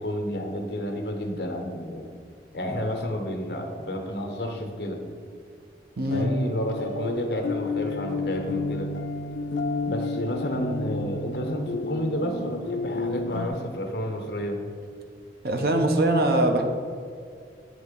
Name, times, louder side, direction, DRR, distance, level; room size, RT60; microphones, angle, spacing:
voice 1, 0.0-2.1 2.5-5.0 6.1-8.9 9.8-14.6, equal, 65° left, 3 dB, 1.0 m, -30 dB
sound 1, 6.0-13.5, left 3 dB, 90° left, 0.4 m, -31 dB
voice 2, 6.0-6.3 15.4-16.6, right 1 dB, 55° right, 4 dB, 0.7 m, -22 dB
8.9 x 3.6 x 5.3 m, 2.2 s
head